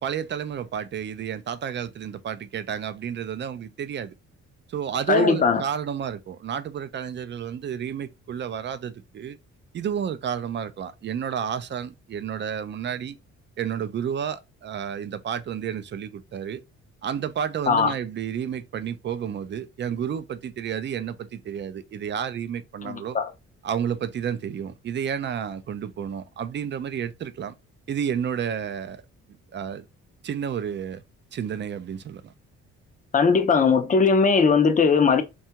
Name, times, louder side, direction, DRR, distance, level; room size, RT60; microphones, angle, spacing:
voice 1, 0.0-4.1 4.7-9.4 9.7-13.2 13.6-16.6 17.0-23.2 23.6-27.5 27.9-29.0 29.5-29.9 30.2-31.0 31.3-32.3, right 8 dB, 40° right, 0.4 m, -31 dB
voice 2, 5.1-5.6 17.7-17.9 22.8-23.3 33.1-35.2, left 5 dB, 25° left, 0.5 m, -19 dB
2.7 x 2.3 x 2.8 m
cardioid pair, 90°, 30 cm